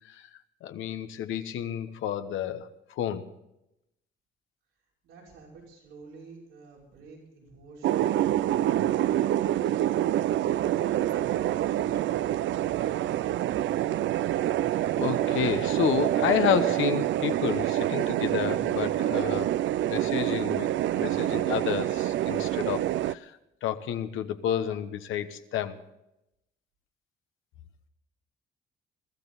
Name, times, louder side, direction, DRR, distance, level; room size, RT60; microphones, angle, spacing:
voice 1, 0.6-2.7 3.0-3.3 15.0-19.5 19.9-20.7 20.9-25.8, left 9 dB, 85° left, 1.2 m, -30 dB
voice 2, 5.0-8.9 9.4-12.2, right 4 dB, 90° right, 5.8 m, -50 dB
sound 1, 7.8-23.1, right 13 dB, 70° right, 0.5 m, -26 dB
22.0 x 13.5 x 4.1 m
cardioid pair, 90°, 20 cm